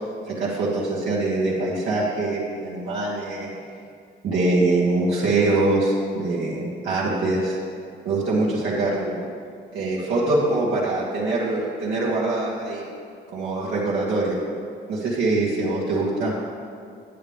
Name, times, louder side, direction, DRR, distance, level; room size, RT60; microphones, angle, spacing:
voice 1, 0.3-3.5 4.2-7.6 8.0-9.2 9.7-12.8 13.3-14.4 14.9-16.3, right 2 dB, 75° right, -7 dB, 1.7 m, -23 dB
9.5 x 8.4 x 3.6 m, 2.3 s
cardioid pair, 90°, 20 cm